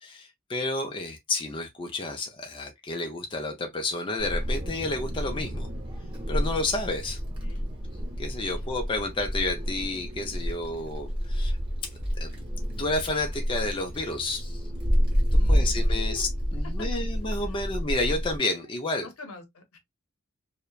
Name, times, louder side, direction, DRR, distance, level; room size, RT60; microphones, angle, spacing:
voice 1, 0.0-5.7 6.3-7.2 8.2-11.6 12.1-12.3 12.8-14.6 15.3-19.1, left 2 dB, 25° left, 0.4 m, -30 dB
Wind, 4.2-18.4, equal, 25° right, 1.0 m, -29 dB
voice 2, 15.3-16.3 16.8-16.9 17.4-17.7 18.6-18.7 19.0-19.8, left 3 dB, 75° left, 0.7 m, -45 dB
2.8 x 2.1 x 2.2 m
head